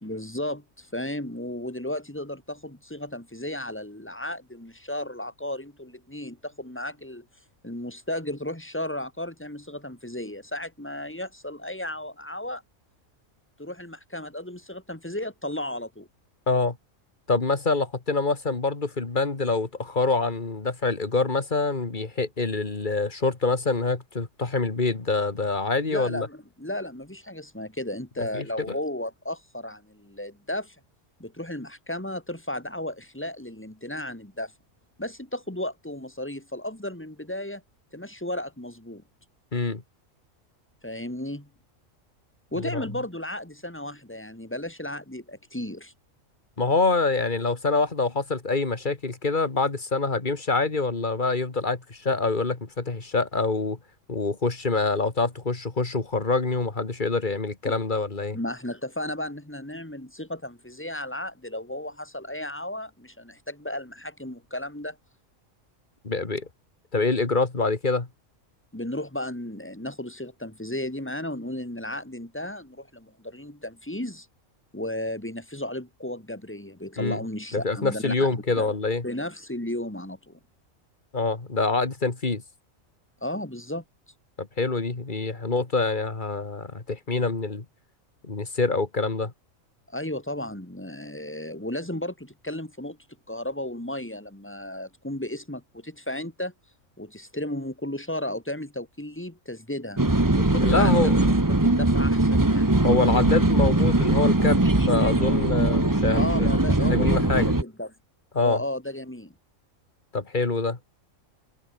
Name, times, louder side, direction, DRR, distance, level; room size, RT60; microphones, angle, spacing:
voice 1, 0.0-7.3 7.6-12.6 13.6-16.1 25.9-30.8 31.2-34.5 35.0-37.6 37.9-39.0 40.8-41.5 42.5-45.9 58.3-65.0 68.7-74.3 74.7-78.7 79.0-80.4 83.2-83.8 89.9-93.0 93.3-96.5 97.0-100.0 100.4-102.7 106.1-107.9 108.4-109.3, left 1 dB, 10° left, 3.4 m, -34 dB
voice 2, 16.5-16.8 17.3-26.3 28.3-28.7 39.5-39.8 42.6-42.8 46.6-53.8 54.1-58.4 66.0-66.5 66.9-68.1 77.0-77.2 77.5-79.0 81.1-82.4 84.4-87.7 88.2-89.3 100.6-101.2 102.8-104.6 104.9-106.5 106.8-107.6 108.3-108.6 110.1-110.8, left 3 dB, 35° left, 2.4 m, -25 dB
sound 1, 100.0-107.6, right 2 dB, 15° right, 1.6 m, -21 dB
omnidirectional pair, 1.4 m